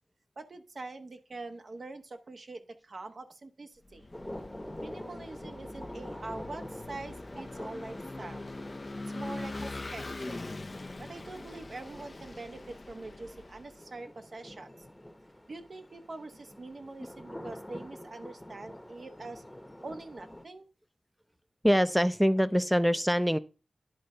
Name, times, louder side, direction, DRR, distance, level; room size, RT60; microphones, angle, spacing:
voice 1, 0.4-4.1 4.8-8.4 9.1-10.4 11.0-14.7 15.5-19.4 19.8-20.7, right 2 dB, 65° right, 1.1 m, -44 dB
Vehicle / Engine, 3.9-13.7, left 2 dB, 45° left, 0.6 m, -43 dB
sound 1, 4.1-20.4, left 1 dB, 15° left, 1.0 m, -47 dB
voice 2, 21.6-23.4, equal, ahead, 0.6 m, -24 dB
10.5 x 3.7 x 5.5 m
cardioid pair, 50°, 0 cm